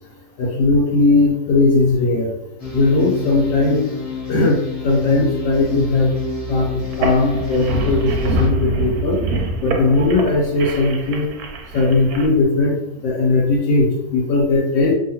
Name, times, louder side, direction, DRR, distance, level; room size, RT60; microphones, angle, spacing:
voice 1, 0.4-2.3 2.7-3.8 4.3-6.1 6.5-9.2 9.6-11.3 11.7-12.8 13.0-14.9, left 3 dB, 80° left, -1 dB, 1.2 m, -18 dB
sound 1, 2.6-8.5, left 4 dB, 40° left, 0.5 m, -28 dB
sound 2, 6.8-12.3, right 1 dB, 70° right, 0.9 m, -25 dB
2.8 x 2.6 x 2.7 m, 0.86 s
omnidirectional pair, 1.9 m